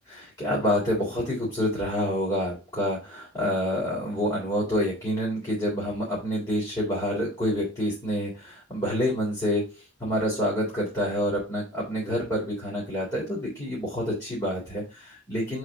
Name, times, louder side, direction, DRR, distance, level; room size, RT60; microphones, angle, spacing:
voice 1, 0.1-15.6, equal, 20° left, -7 dB, 3.4 m, -28 dB
7.7 x 5.0 x 3.7 m, 0.27 s
head